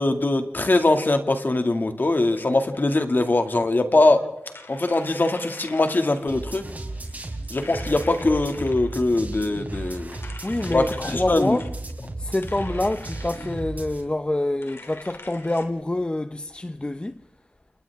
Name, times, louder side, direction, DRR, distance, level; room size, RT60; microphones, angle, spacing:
voice 1, 0.0-4.2 4.7-6.7 7.5-10.2 10.7-11.6, left 2 dB, 45° left, 2.3 m, -22 dB
sound 1, 2.4-3.6 4.4-6.2 7.0-9.2 10.1-11.7 12.3-13.7 14.6-15.7, left 2 dB, 65° left, 3.1 m, -44 dB
sound 2, 6.3-14.0, right 2 dB, 40° right, 4.2 m, -34 dB
voice 2, 10.4-11.7 12.2-17.3, left 1 dB, 25° left, 0.7 m, -26 dB
29.5 x 29.5 x 3.6 m
wide cardioid pair, 75°, 4 cm